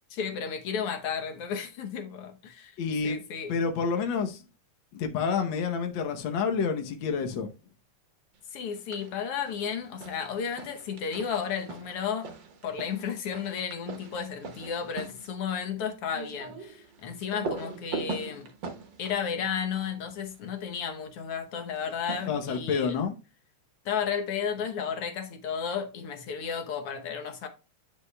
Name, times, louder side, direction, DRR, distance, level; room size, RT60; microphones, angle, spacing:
voice 1, 0.1-2.7 3.0-3.5 8.5-12.3 12.6-18.5 19.0-23.0 23.8-27.5, left 7 dB, 65° left, 1.5 m, -33 dB
voice 2, 2.8-3.2 3.5-4.4 4.9-7.5 22.3-23.1, left 5 dB, 80° left, 1.0 m, -28 dB
sound 1, 8.6-9.2 9.5-20.5 21.7-22.9, right 4 dB, 60° right, 1.2 m, -41 dB
9.2 x 6.4 x 2.2 m
omnidirectional pair, 3.4 m